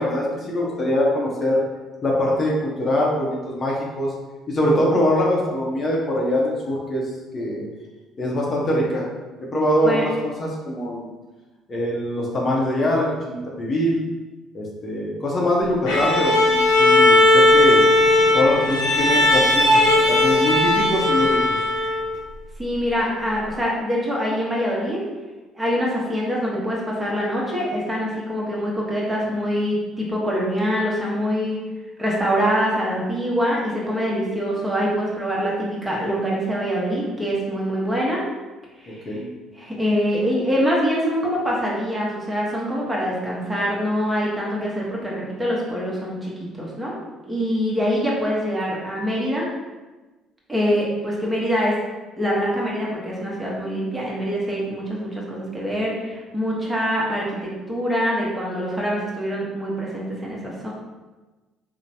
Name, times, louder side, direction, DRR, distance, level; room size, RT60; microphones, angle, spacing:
voice 1, 0.0-1.6 2.0-4.1 4.5-7.6 8.2-9.1 9.4-11.1 11.7-14.0 14.5-17.8 18.3-21.4 39.1-39.3, left 1 dB, 40° left, -3 dB, 0.7 m, -23 dB
Bowed string instrument, 15.9-22.2, left 2 dB, 80° left, 0.8 m, -17 dB
voice 2, 22.6-25.0 25.5-31.6 32.0-38.2 38.8-39.2 39.5-46.9 47.2-49.5 50.5-51.8 52.2-60.7, equal, 15° right, -4 dB, 0.9 m, -24 dB
3.1 x 2.1 x 2.7 m, 1.2 s
hypercardioid pair, 65°, 0 cm